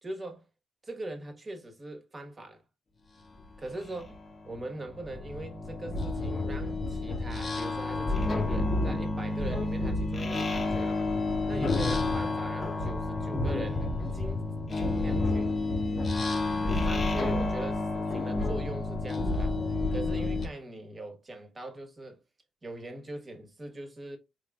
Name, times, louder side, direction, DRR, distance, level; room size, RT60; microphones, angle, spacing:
voice 1, 0.0-0.4 0.8-2.6 3.6-4.2 4.5-11.2 11.5-13.8 14.1-14.5 14.8-15.5 16.1-19.6 19.9-22.2 22.6-24.2, right 2 dB, 30° right, 1.3 m, -41 dB
sound 1, 3.4-3.5 3.9-20.5, left 2 dB, 35° left, 0.8 m, -30 dB
4.7 x 3.3 x 2.3 m
cardioid pair, 90°, 0 cm